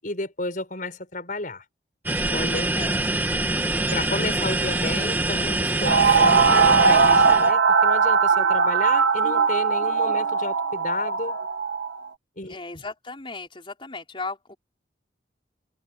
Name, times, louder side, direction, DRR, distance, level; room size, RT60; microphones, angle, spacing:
voice 1, 0.0-1.6 2.3-2.8 3.9-11.4 12.4-12.8, left 2 dB, 50° left, 6.5 m, -32 dB
sound 1, 2.1-7.5, right 2 dB, 10° right, 2.0 m, -25 dB
sound 2, 5.9-12.0, right 5 dB, 85° right, 2.1 m, -19 dB
voice 2, 12.4-14.6, left 3 dB, 30° left, 4.6 m, -36 dB
head